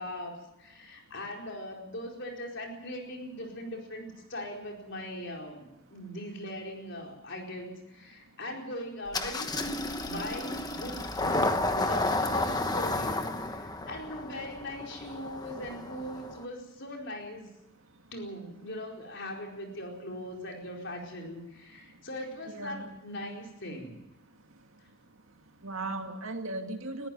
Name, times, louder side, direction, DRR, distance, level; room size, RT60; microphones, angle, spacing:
voice 1, 0.0-17.5 18.1-24.0, left 1 dB, 55° left, 1 dB, 4.6 m, -40 dB
Engine starting, 9.1-16.4, left 2 dB, 20° left, 1.3 m, -32 dB
voice 2, 22.5-22.9 25.6-27.1, right 2 dB, 70° right, 5 dB, 2.2 m, -37 dB
21.0 x 14.5 x 9.2 m, 0.95 s
head